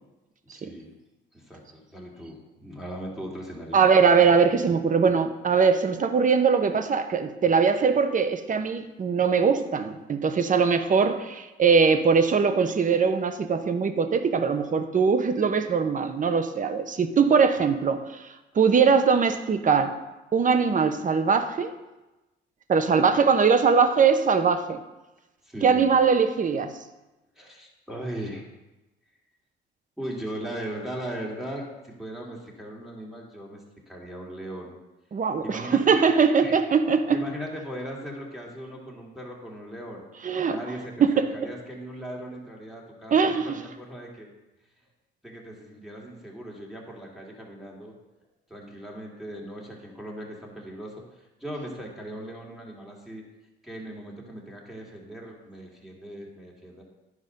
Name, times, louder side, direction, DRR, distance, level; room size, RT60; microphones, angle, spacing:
voice 1, 0.4-1.0 1.3-3.9 25.4-26.0 27.4-28.5 30.0-34.7 35.4-36.0 36.4-36.6 37.1-40.0 40.4-44.3 45.2-48.0 48.5-53.2 53.6-56.8, equal, ahead, -2 dB, 2.5 m, -38 dB
voice 2, 3.7-18.3 18.5-19.9 20.3-21.7 22.7-24.8 25.6-26.7 35.1-37.2 40.2-40.6 41.0-41.1 43.1-43.5, right 5 dB, 40° right, 9 dB, 0.9 m, -21 dB
10.5 x 4.9 x 5.4 m, 1.0 s
cardioid pair, 90°, 20 cm